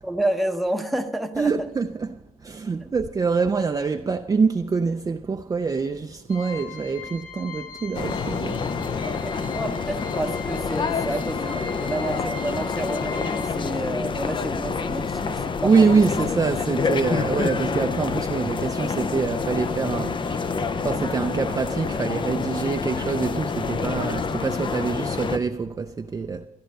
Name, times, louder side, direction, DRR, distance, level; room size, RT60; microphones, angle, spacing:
voice 1, 0.0-1.7 2.8-2.9 9.1-15.8, right 1 dB, ahead, 0.7 m, -30 dB
voice 2, 1.4-9.1 11.1-11.2 15.6-26.5, right 5 dB, 25° right, 0.4 m, -25 dB
sound 1, 6.3-13.5, left 5 dB, 60° left, 3.4 m, -40 dB
sound 2, 7.9-25.4, left 5 dB, 30° left, 0.5 m, -27 dB
13.5 x 11.5 x 5.3 m
wide cardioid pair, 175°, 15 cm